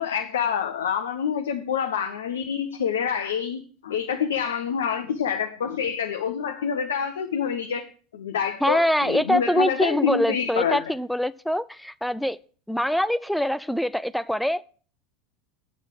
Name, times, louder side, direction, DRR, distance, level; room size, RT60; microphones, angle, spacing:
voice 1, 0.0-7.9 8.1-10.8, left 7 dB, 75° left, 0.9 m, -27 dB
voice 2, 8.6-12.4 12.7-14.6, equal, ahead, 0.4 m, -24 dB
8.2 x 6.5 x 7.6 m
hypercardioid pair, 80°, 0 cm